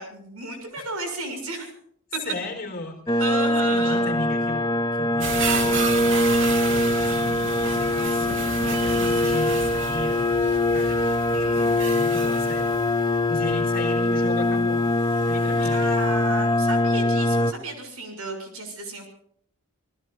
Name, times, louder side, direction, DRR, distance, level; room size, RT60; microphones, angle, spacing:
voice 1, 0.0-1.7 3.2-4.0 11.3-11.7 15.7-19.1, right 2 dB, 80° right, 5 dB, 6.8 m, -33 dB
voice 2, 2.2-3.3 3.7-8.3 8.6-10.4 10.7-11.0 11.5-14.8 15.3-16.2, left 2 dB, 40° left, 4 dB, 3.8 m, -36 dB
sound 1, 3.1-17.5, left 1 dB, 15° left, 0.6 m, -22 dB
sound 2, 5.2-16.4 16.9-17.0, right 4 dB, 55° right, 2.9 m, -33 dB
28.5 x 19.5 x 2.6 m, 0.64 s
head